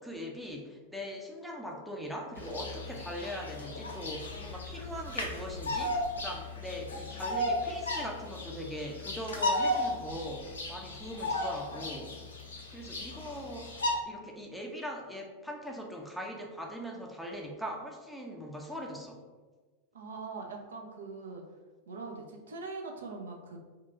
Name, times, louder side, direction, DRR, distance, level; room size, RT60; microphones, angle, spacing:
voice 1, 0.0-12.1 12.7-19.2, equal, ahead, 0 dB, 0.5 m, -41 dB
Bird vocalization bird call bird song, 2.4-13.9, left 1 dB, 75° left, 0.5 m, -35 dB
voice 2, 19.9-21.4 21.9-23.6, right 4 dB, 65° right, 1 dB, 0.5 m, -42 dB
2.9 x 2.3 x 3.6 m, 1.3 s
figure-of-eight pair, 90°, 0 cm